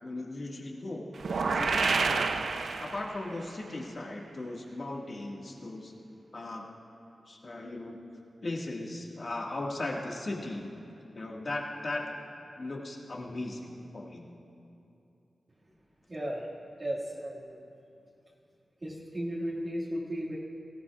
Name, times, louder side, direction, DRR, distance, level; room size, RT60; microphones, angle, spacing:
voice 1, 0.0-1.1 1.4-2.3 2.8-5.9 6.3-6.6 7.3-8.0 8.4-10.7 11.1-12.0 12.6-14.3, left 2 dB, 45° left, -1 dB, 1.7 m, -37 dB
sound 1, 1.2-3.4, right 4 dB, 70° right, 0.5 m, -29 dB
voice 2, 16.1-16.5 16.8-17.6 18.8-20.4, equal, 35° right, -9 dB, 2.0 m, -35 dB
19.0 x 17.0 x 2.4 m, 2.7 s
wide cardioid pair, 90°, 0 cm